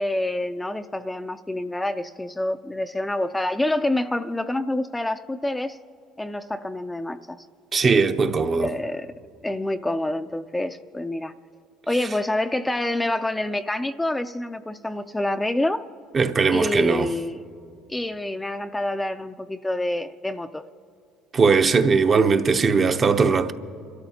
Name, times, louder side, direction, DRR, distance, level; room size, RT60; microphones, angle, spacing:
voice 1, 0.0-5.8 6.2-7.5 8.6-9.1 9.4-11.3 11.9-15.8 16.5-17.4 17.9-20.7, left 1 dB, 10° left, 0.4 m, -27 dB
voice 2, 7.7-8.7 16.1-17.1 21.3-23.5, right 4 dB, 35° right, 0.8 m, -19 dB
27.5 x 13.0 x 2.8 m
supercardioid pair, 80°, 0 cm